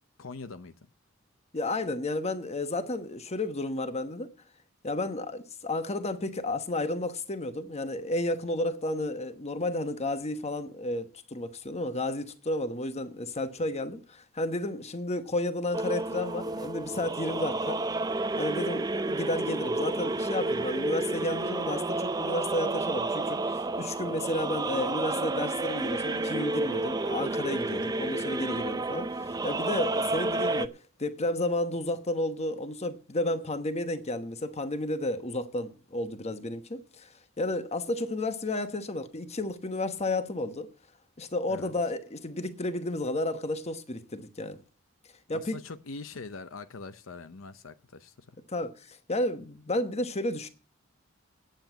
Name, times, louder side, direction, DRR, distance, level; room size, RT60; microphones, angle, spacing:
voice 1, 0.2-0.7 41.5-41.7 45.3-48.4, left 4 dB, 75° left, 0.7 m, -43 dB
voice 2, 1.5-4.3 4.8-17.8 18.4-37.1 37.4-40.7 41.2-44.6 45.3-45.6 48.5-50.5, left 1 dB, 30° left, 1.1 m, -32 dB
sound 1, 15.7-30.7, right 2 dB, 20° right, 0.5 m, -30 dB
8.9 x 8.0 x 9.0 m
head